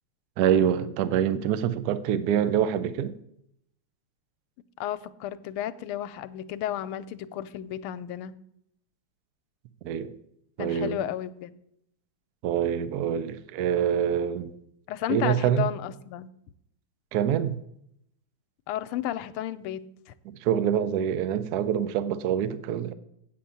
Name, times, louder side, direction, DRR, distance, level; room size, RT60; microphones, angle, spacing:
voice 1, 0.4-3.1 9.8-10.1 10.6-11.0 12.4-14.5 15.1-15.7 17.1-17.6 20.4-22.9, right 9 dB, 70° right, 0.9 m, -25 dB
voice 2, 4.8-8.3 10.6-11.6 14.9-16.3 18.7-19.8, left 11 dB, 90° left, 1.5 m, -33 dB
8.6 x 7.7 x 6.8 m
omnidirectional pair, 2.3 m